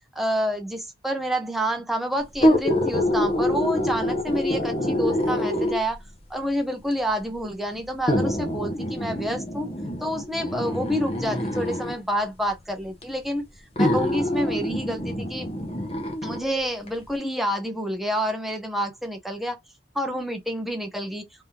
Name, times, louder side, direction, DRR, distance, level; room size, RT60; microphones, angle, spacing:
voice 1, 0.1-6.0 6.3-9.7 10.0-13.4 13.8-15.5 16.2-19.6 19.9-21.3, equal, ahead, 0.7 m, -28 dB
sound 1, 2.3-6.0 6.9-7.0 8.1-12.0 13.0-13.1 13.8-16.4 16.9-17.0, left 1 dB, 30° left, 1.0 m, -25 dB
3.5 x 3.4 x 2.7 m
head